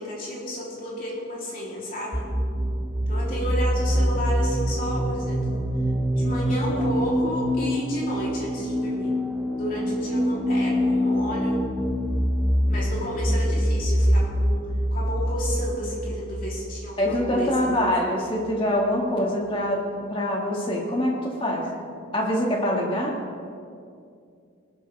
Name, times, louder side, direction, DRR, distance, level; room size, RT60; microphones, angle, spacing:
voice 1, 0.0-2.3 3.1-5.6 6.1-9.1 9.5-11.6 12.7-17.8, equal, 45° left, -5 dB, 3.5 m, -32 dB
sound 1, 2.1-17.7, equal, ahead, 0.8 m, -25 dB
voice 2, 17.0-19.8 20.1-21.7 22.1-23.2, left 1 dB, 25° left, -1 dB, 2.0 m, -24 dB
19.5 x 12.0 x 3.5 m, 2.4 s
head